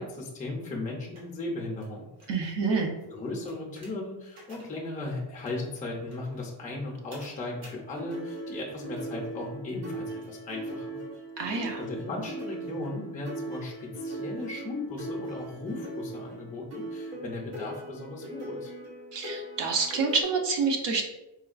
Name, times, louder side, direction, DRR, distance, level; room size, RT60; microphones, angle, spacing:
voice 1, 0.0-2.1 3.1-11.0 11.8-18.7, left 2 dB, 15° left, -1 dB, 0.5 m, -37 dB
sound 1, 1.1-1.2 1.8-1.9 2.2-2.4 2.6-2.8 3.5-3.9 4.4-4.6 5.5-5.6 5.8-5.9 6.1-6.3 7.1-7.3 7.6-7.7 7.9-20.2, right 1 dB, 85° right, 1.1 m, -39 dB
voice 2, 2.3-2.9 11.4-11.8 19.1-21.0, right 4 dB, 60° right, 3 dB, 0.6 m, -27 dB
4.3 x 2.3 x 2.4 m, 1.0 s
wide cardioid pair, 150°, 49 cm